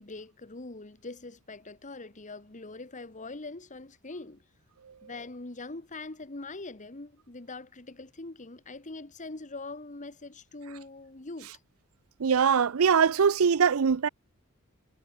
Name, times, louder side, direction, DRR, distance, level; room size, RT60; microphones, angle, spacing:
voice 1, 0.0-4.4 5.0-11.5, left 3 dB, 35° left, 1.5 m, -42 dB
voice 2, 12.2-14.1, right 6 dB, 70° right, 0.5 m, -22 dB
head